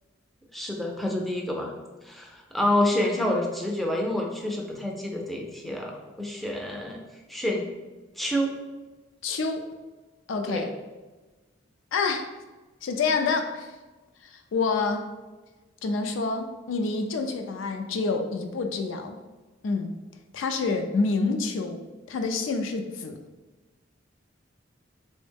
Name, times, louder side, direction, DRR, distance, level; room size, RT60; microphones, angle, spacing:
voice 1, 0.5-1.7 2.0-7.0 7.3-7.6 8.2-8.5 10.5-10.7, left 1 dB, ahead, -1 dB, 0.4 m, -28 dB
voice 2, 9.2-9.7 10.3-10.7 11.9-12.3 12.8-13.7 14.2-15.1 15.8-19.2 19.6-19.9 20.3-23.2, left 4 dB, 80° left, 6 dB, 0.4 m, -27 dB
3.5 x 2.1 x 3.3 m, 1.2 s
head